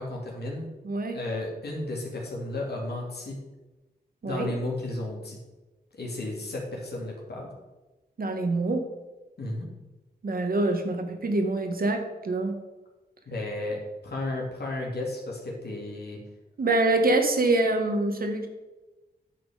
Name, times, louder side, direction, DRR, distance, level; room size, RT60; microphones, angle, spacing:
voice 1, 0.0-0.7 1.1-3.4 4.2-5.4 5.9-7.5 9.4-9.7 13.3-16.2, left 2 dB, 70° left, -2 dB, 2.6 m, -33 dB
voice 2, 0.8-1.2 4.2-4.5 8.2-8.8 10.2-12.5 16.6-18.5, right 2 dB, 55° right, 5 dB, 1.5 m, -25 dB
9.8 x 6.1 x 5.0 m, 1.1 s
wide cardioid pair, 85°, 18 cm